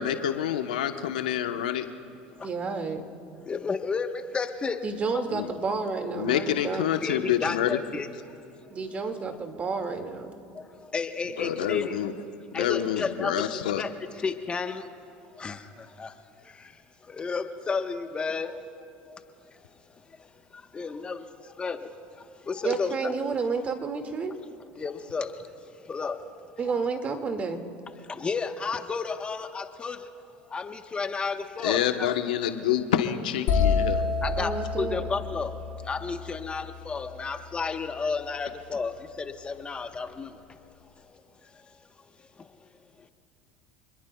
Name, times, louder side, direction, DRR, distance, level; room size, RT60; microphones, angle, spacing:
voice 1, 0.0-1.9 5.3-5.5 6.1-7.8 11.4-12.1 12.5-13.8 31.6-34.0, left 10 dB, 90° left, 7 dB, 1.0 m, -27 dB
voice 2, 2.4-3.0 4.8-6.9 8.7-10.3 22.6-24.3 26.6-27.6 34.4-35.1, right 4 dB, 35° right, 5 dB, 2.0 m, -30 dB
voice 3, 3.5-4.1 4.3-4.8 5.1-5.2 7.0-8.1 10.9-11.9 12.5-13.4 13.8-13.9 14.2-14.8 15.4-15.6 16.0-16.1 17.1-18.5 20.7-21.2 21.6-21.8 22.5-23.3 24.8-25.3 25.9-26.2 28.2-30.0 30.5-32.1 34.2-34.5 34.8-35.5 35.9-40.3, left 5 dB, 25° left, 7 dB, 1.1 m, -31 dB
sound 1, 33.5-37.3, left 5 dB, 65° left, 3.9 m, -28 dB
27.5 x 21.0 x 2.3 m, 2.6 s
supercardioid pair, 90°, 4 cm